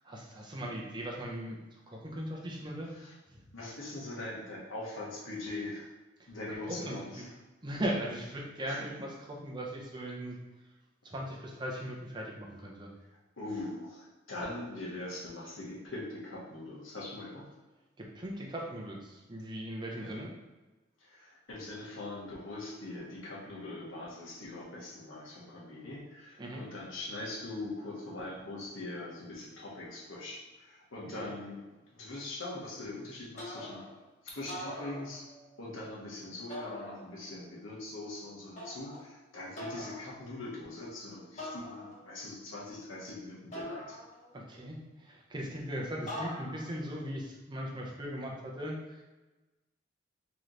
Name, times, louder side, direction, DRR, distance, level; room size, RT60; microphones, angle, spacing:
voice 1, 0.0-2.9 3.3-3.4 6.2-7.3 7.6-10.4 11.0-12.9 18.0-20.3 26.4-26.6 31.2-31.3 44.3-49.0, equal, 25° right, -2 dB, 0.6 m, -39 dB
voice 2, 3.5-5.9 6.3-7.3 8.6-8.8 13.4-17.4 20.0-20.2 21.0-31.6 31.9-33.8 34.2-35.2 35.6-44.0, left 2 dB, 85° left, -4 dB, 1.1 m, -42 dB
sound 1, 33.4-34.0 34.4-35.5 36.5-37.4 38.6-39.1 39.6-40.1 41.4-42.2 43.5-44.5 46.1-46.8, left 1 dB, 40° left, 1.1 m, -43 dB
3.2 x 3.0 x 3.8 m, 1.2 s
head